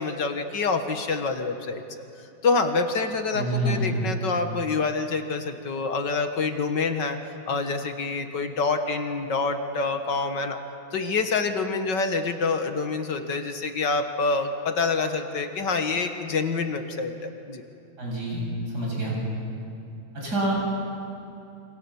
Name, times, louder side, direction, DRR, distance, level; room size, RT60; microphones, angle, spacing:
voice 1, 0.0-2.0 2.4-7.2 7.5-10.6 10.9-17.6, left 4 dB, 60° left, 6 dB, 2.1 m, -27 dB
voice 2, 3.3-4.0 18.0-18.4 18.7-19.2 20.1-20.5, right 1 dB, 50° right, -3 dB, 8.1 m, -27 dB
28.0 x 25.5 x 7.2 m, 2.9 s
omnidirectional pair, 2.2 m